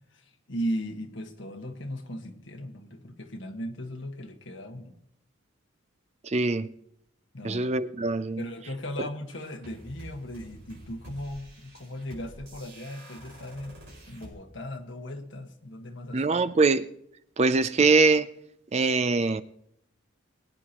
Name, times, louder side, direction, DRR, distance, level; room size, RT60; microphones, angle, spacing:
voice 1, 0.5-4.9 7.3-7.7 8.4-13.8 14.1-16.2, equal, 60° left, 1.5 m, -37 dB
voice 2, 6.2-6.7 7.4-8.4 16.1-16.9 17.4-18.3 18.7-19.4, right 3 dB, 30° right, 0.4 m, -23 dB
sound 1, 9.3-14.3, right 1 dB, 55° right, 5.5 m, -48 dB
22.0 x 9.8 x 3.0 m
head